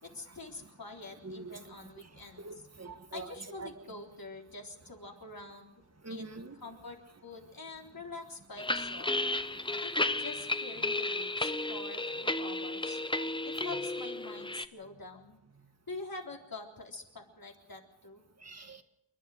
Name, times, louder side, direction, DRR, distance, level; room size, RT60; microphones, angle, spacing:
voice 1, 0.0-2.6 3.1-5.7 6.1-6.2 6.6-9.2 9.8-13.0 13.4-15.4 15.9-18.2, left 3 dB, 50° left, 1 dB, 3.7 m, -46 dB
voice 2, 2.4-3.3 3.6-3.7 6.0-6.6 18.4-18.8, right 3 dB, 35° right, 8 dB, 1.8 m, -44 dB
sound 1, 8.6-14.7, left 2 dB, 10° left, 0.8 m, -33 dB
29.0 x 11.5 x 7.8 m, 0.82 s
wide cardioid pair, 85°, 45 cm